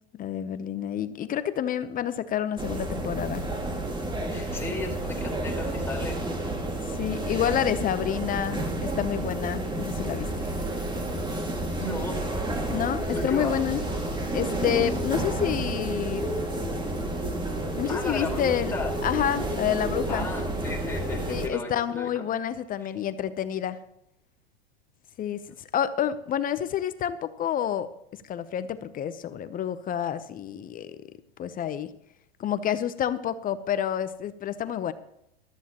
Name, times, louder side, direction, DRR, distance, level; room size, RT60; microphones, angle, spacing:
voice 1, 0.1-3.5 6.9-10.5 12.7-13.8 14.3-16.3 17.8-18.7 19.0-20.3 21.3-23.8 25.2-27.9 28.2-31.0 31.4-31.9 32.4-34.9, left 10 dB, 30° left, 13 dB, 0.8 m, -29 dB
sound 1, 2.6-21.5, right 1 dB, 15° right, 2.2 m, -30 dB
voice 2, 4.3-6.3 11.8-12.2 13.1-13.5 17.8-18.9 20.1-22.2, left 2 dB, 10° left, -1 dB, 4.3 m, -35 dB
14.5 x 13.0 x 3.0 m, 0.78 s
hypercardioid pair, 105°, 31 cm